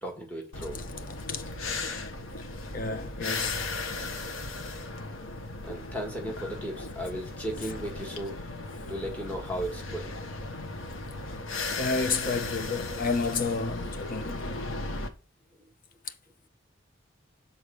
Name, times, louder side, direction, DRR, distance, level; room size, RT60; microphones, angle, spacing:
voice 1, 0.0-0.8 5.6-8.4 8.9-10.2 11.7-11.8, right 1 dB, 10° left, 1.7 m, -36 dB
sound 1, 0.5-15.1, left 2 dB, 85° left, 1.2 m, -36 dB
voice 2, 2.7-3.7 11.8-14.7 16.0-16.1, left 4 dB, 45° left, 0.8 m, -31 dB
7.8 x 4.1 x 6.9 m
head